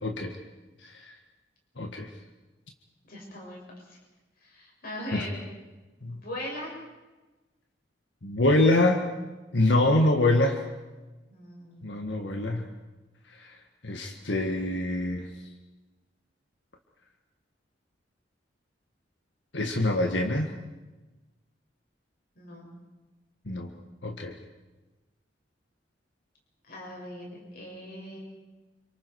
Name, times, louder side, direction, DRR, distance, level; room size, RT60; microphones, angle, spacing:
voice 1, 0.0-0.3 0.8-0.9 1.8-2.1 5.1-5.2 6.0-6.2 8.2-9.0 9.5-10.6 11.8-12.7 13.4-13.5 13.8-15.3 19.5-20.5 23.5-23.7 24.0-24.4, left 1 dB, 85° left, 3 dB, 1.8 m, -25 dB
voice 2, 3.0-3.6 3.9-4.0 4.4-5.4 6.1-6.8 11.3-11.9 22.4-22.7 26.7-28.2, left 1 dB, 55° left, -2 dB, 7.0 m, -40 dB
28.0 x 25.5 x 4.8 m, 1.2 s
head